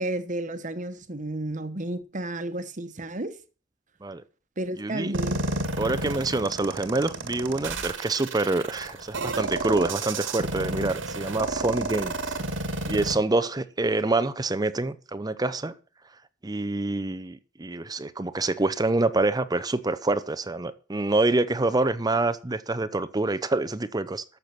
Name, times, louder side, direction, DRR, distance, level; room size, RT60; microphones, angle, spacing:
voice 1, 0.0-3.3 4.6-5.4, right 1 dB, 40° right, 1.2 m, -32 dB
voice 2, 4.8-5.2 5.8-12.4 12.9-15.7 16.4-24.2, right 2 dB, 20° right, 0.7 m, -26 dB
sound 1, 5.1-13.1, right 2 dB, 85° right, 1.9 m, -31 dB
12.5 x 6.9 x 5.9 m
head